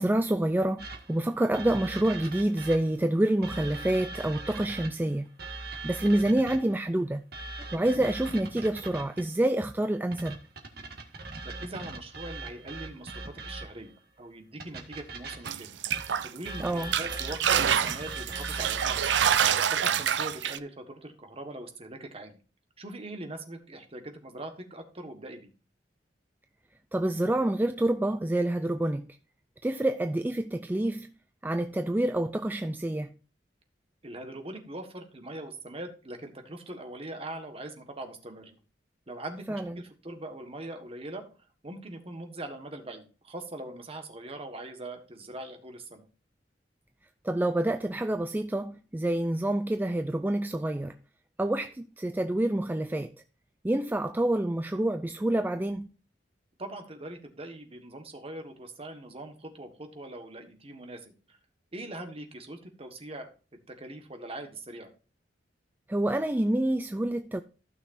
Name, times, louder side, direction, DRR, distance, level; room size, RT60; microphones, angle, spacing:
voice 1, 0.0-5.3 5.8-7.2 7.6-10.4 16.6-16.9 26.9-29.1 29.6-31.1 31.4-33.1 39.5-39.8 47.2-50.9 51.4-53.1 53.6-55.9 65.9-67.4, right 1 dB, 10° right, 0.4 m, -27 dB
sound 1, 0.8-3.0 3.4-6.8 7.3-9.4 10.1-13.9 14.6-19.5, right 3 dB, 60° right, 1.6 m, -40 dB
voice 2, 11.4-15.7 16.2-19.4 19.7-22.4 22.8-25.5 34.0-38.6 39.1-41.3 41.6-46.1 56.6-61.4 61.7-63.3 63.7-64.9, right 1 dB, 35° right, 1.5 m, -42 dB
sound 2, 15.4-16.5 16.8-20.6, right 9 dB, 80° right, 0.5 m, -26 dB
15.0 x 6.2 x 2.6 m
head